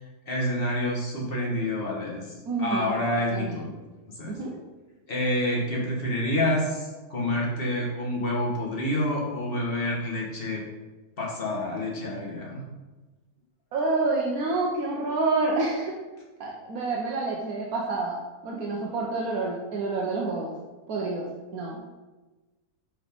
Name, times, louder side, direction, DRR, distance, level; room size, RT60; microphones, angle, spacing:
voice 1, 0.3-3.7 4.1-4.4 5.1-10.6 11.2-12.6, left 1 dB, 40° left, -3 dB, 1.7 m, -28 dB
voice 2, 2.5-2.9 3.3-3.6 4.3-4.5 13.7-15.9 16.4-18.2 18.4-20.5 20.9-21.8, right 3 dB, 80° right, -3 dB, 1.5 m, -28 dB
5.6 x 5.5 x 5.2 m, 1.2 s
omnidirectional pair, 1.5 m